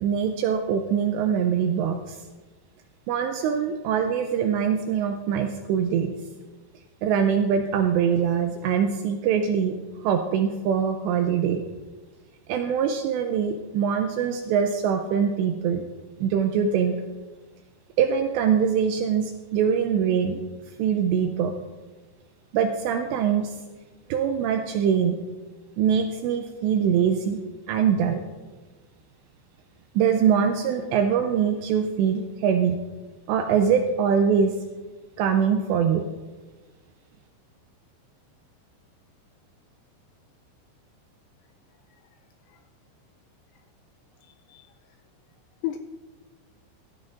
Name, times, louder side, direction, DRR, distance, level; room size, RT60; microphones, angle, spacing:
voice 1, 0.0-2.2 3.1-6.2 7.0-9.8 10.0-11.6 12.5-15.8 16.2-17.0 18.0-20.4 20.8-21.5 22.5-23.6 24.1-25.2 25.8-27.4 27.7-28.2 30.0-32.8 33.3-34.6 35.2-36.0, right 7 dB, 85° right, 5 dB, 2.5 m, -23 dB
voice 2, 44.2-44.7 45.6-45.8, left 14 dB, 85° left, 6 dB, 2.6 m, -33 dB
16.0 x 13.0 x 2.5 m, 1.3 s
omnidirectional pair, 5.6 m